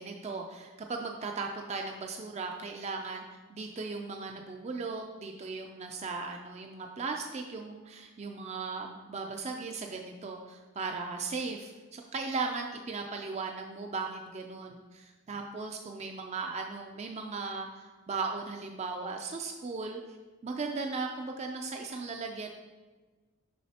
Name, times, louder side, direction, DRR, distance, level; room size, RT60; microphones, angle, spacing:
voice 1, 0.0-3.2 3.5-20.2 20.4-22.5, right 4 dB, 30° right, 2 dB, 0.3 m, -37 dB
6.3 x 5.8 x 2.8 m, 1.3 s
head